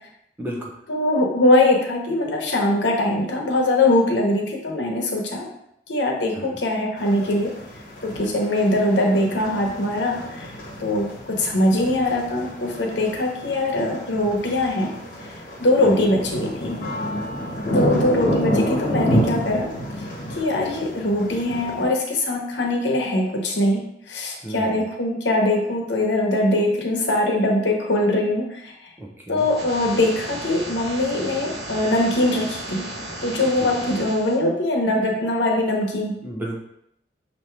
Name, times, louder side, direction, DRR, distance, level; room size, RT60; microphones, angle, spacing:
voice 1, 0.4-0.8 6.3-6.6 15.8-16.1 17.8-17.9 24.4-24.9 29.0-29.5 36.2-36.6, right 1 dB, 10° right, -2 dB, 0.7 m, -33 dB
voice 2, 0.9-5.4 5.9-7.5 8.0-10.5 10.8-14.9 15.6-16.8 17.7-19.7 20.3-28.7 29.3-32.9 33.2-36.2, left 1 dB, 80° left, 1 dB, 0.9 m, -22 dB
sound 1, 7.0-21.8, equal, 45° left, 1.1 m, -29 dB
sound 2, 29.4-34.4, right 1 dB, 65° right, 0.9 m, -34 dB
5.6 x 2.8 x 3.2 m, 0.76 s
head